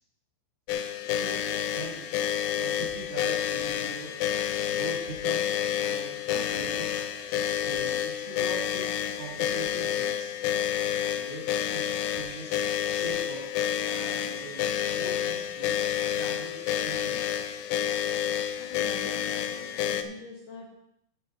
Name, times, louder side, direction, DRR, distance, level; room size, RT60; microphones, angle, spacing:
sound 1, 0.7-20.0, left 10 dB, 80° left, 2.1 m, -29 dB
voice 1, 1.1-2.1 2.6-4.1 4.7-8.9 9.2-10.3 11.1-13.5 13.8-15.8 16.1-17.4, right 3 dB, 50° right, -4 dB, 3.4 m, -42 dB
voice 2, 18.6-20.7, left 4 dB, 60° left, -1 dB, 2.5 m, -44 dB
14.0 x 6.4 x 4.2 m, 0.75 s
omnidirectional pair, 4.6 m